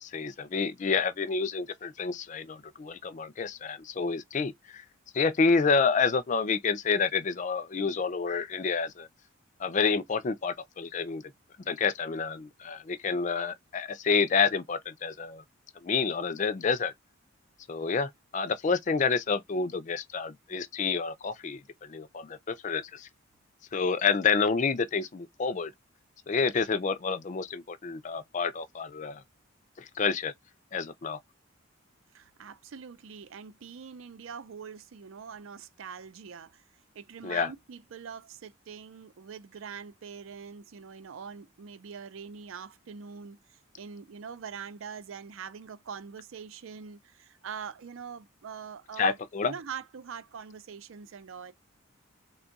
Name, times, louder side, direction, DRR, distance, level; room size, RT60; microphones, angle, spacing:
voice 1, 0.0-4.8 5.1-9.1 9.6-11.2 11.6-15.4 15.8-16.9 17.7-23.1 23.7-25.7 26.3-29.2 29.8-30.3 30.7-31.2 37.2-37.5 49.0-49.5, left 5 dB, 35° left, 0.4 m, -29 dB
voice 2, 32.1-36.6 36.9-49.2 49.4-51.5, right 6 dB, 75° right, 0.5 m, -43 dB
3.4 x 2.3 x 3.9 m
head